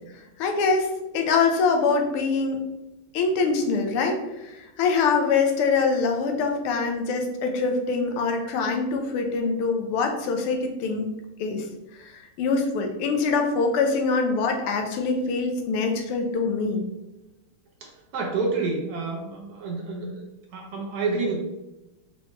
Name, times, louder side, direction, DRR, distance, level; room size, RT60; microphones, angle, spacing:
voice 1, 0.4-2.7 3.1-11.1 11.4-11.6 12.0-16.8, left 4 dB, 90° left, 3 dB, 1.6 m, -24 dB
voice 2, 17.8-20.1 20.5-21.4, right 3 dB, 90° right, 0 dB, 0.8 m, -28 dB
4.4 x 3.1 x 3.0 m, 1.0 s
omnidirectional pair, 2.4 m